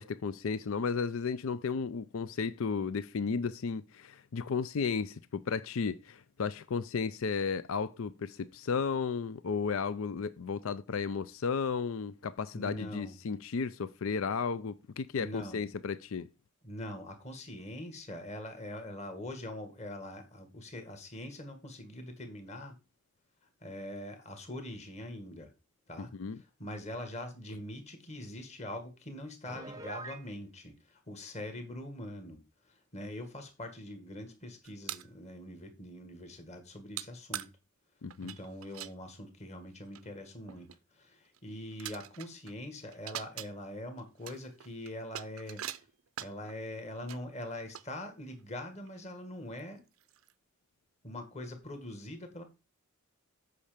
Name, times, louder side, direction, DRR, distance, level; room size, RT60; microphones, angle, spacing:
voice 1, 0.0-16.3 26.0-26.4 38.0-38.4, left 5 dB, 65° left, 0.5 m, -34 dB
voice 2, 12.5-13.1 15.2-15.6 16.6-22.8 23.6-25.5 25.9-32.4 32.7-37.5 38.2-40.7 40.9-45.8 46.2-49.8 51.0-52.4, left 1 dB, 30° left, 1.8 m, -43 dB
Piano, 29.4-30.3, right 2 dB, 15° right, 0.7 m, -44 dB
sound 1, 34.6-35.1 37.0-37.1 37.3-37.5 38.1-38.9 39.6-39.7 39.9-40.1 40.5-40.8 41.3-41.4 41.7-42.5 42.8-43.5 44.0-46.5 47.1-47.2 47.7-48.4 48.9-49.0 49.6-49.7 50.0-50.3, right 12 dB, 70° right, 0.6 m, -43 dB
8.5 x 5.6 x 5.1 m
head